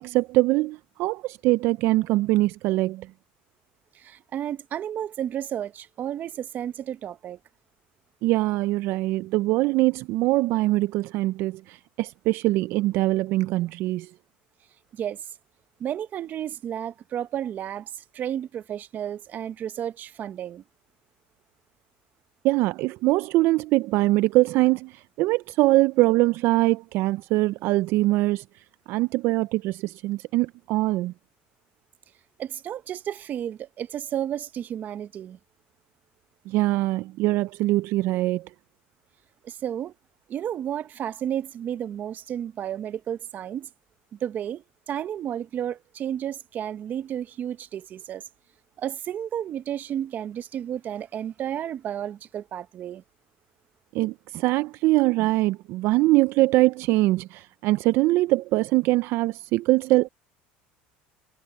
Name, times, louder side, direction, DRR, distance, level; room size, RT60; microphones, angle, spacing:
voice 1, 0.0-3.1 8.2-14.1 22.4-28.4 28.9-31.1 36.5-38.5 53.9-60.1, right 19 dB, 60° right, 0.4 m, -23 dB
voice 2, 3.9-7.4 14.9-15.2 15.8-20.6 32.4-35.4 39.4-39.9 40.3-43.7 44.1-48.2 48.8-53.0, right 10 dB, 40° right, 0.9 m, -32 dB
supercardioid pair, 115°, 4 cm